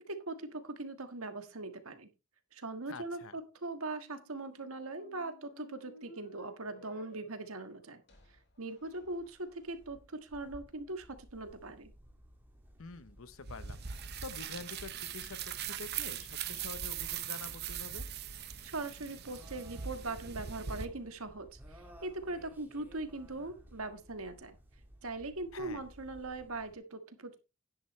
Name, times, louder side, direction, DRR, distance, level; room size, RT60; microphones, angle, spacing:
voice 1, 0.1-2.1 2.5-8.0 8.6-11.9 18.6-24.6 25.0-27.4, right 2 dB, 75° right, 1.5 m, -41 dB
voice 2, 2.9-3.4 12.8-18.1 25.5-25.8, left 4 dB, 70° left, 0.8 m, -47 dB
sound 1, 3.8-9.7, left 2 dB, 50° left, 2.8 m, -58 dB
sound 2, 8.8-26.7, equal, 10° right, 2.0 m, -57 dB
sound 3, 13.5-20.9, right 9 dB, 50° right, 0.8 m, -41 dB
11.0 x 10.0 x 3.2 m
head